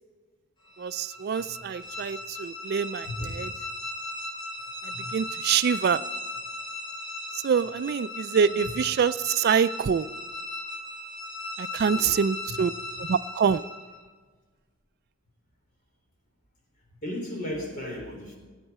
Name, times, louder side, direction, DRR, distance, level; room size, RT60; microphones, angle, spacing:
sound 1, 0.7-14.0, left 2 dB, 25° left, 2.4 m, -37 dB
voice 1, 0.8-3.5 4.8-6.0 7.3-10.1 11.6-12.7 13.0-13.6, right 7 dB, 50° right, 14 dB, 0.3 m, -25 dB
voice 2, 8.3-8.7 11.8-12.6 17.0-18.4, left 1 dB, 45° left, 0 dB, 3.8 m, -36 dB
17.5 x 9.0 x 4.3 m, 1.4 s
head